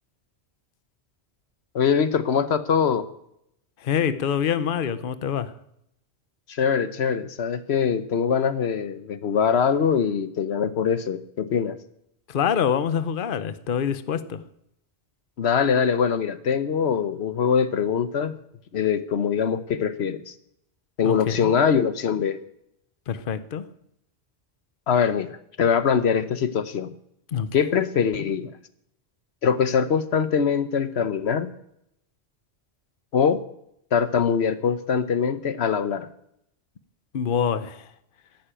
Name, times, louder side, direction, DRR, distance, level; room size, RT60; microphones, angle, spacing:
voice 1, 1.7-3.1 6.5-11.8 15.4-18.3 18.7-20.3 21.0-22.4 24.9-26.9 27.5-28.5 29.4-31.5 33.1-33.4 33.9-36.1, left 7 dB, 75° left, 1.1 m, -23 dB
voice 2, 3.8-5.5 12.3-14.4 21.0-21.5 23.1-23.7 27.3-27.5 37.1-37.9, left 8 dB, 55° left, 1.0 m, -25 dB
13.5 x 11.5 x 8.9 m
omnidirectional pair, 1.1 m